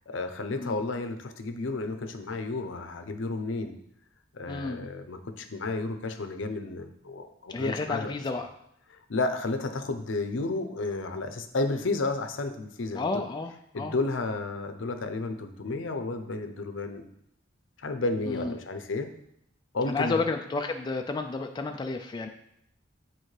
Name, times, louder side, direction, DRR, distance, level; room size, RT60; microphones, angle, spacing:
voice 1, 0.1-3.7 4.3-8.1 9.1-13.2 13.7-17.0 17.8-19.1 19.7-20.2, left 3 dB, 70° left, 8 dB, 0.6 m, -32 dB
voice 2, 4.5-4.9 7.5-8.5 12.9-14.0 18.3-18.6 19.9-22.3, left 3 dB, 20° left, 4 dB, 0.3 m, -31 dB
8.8 x 4.3 x 3.2 m, 0.74 s
head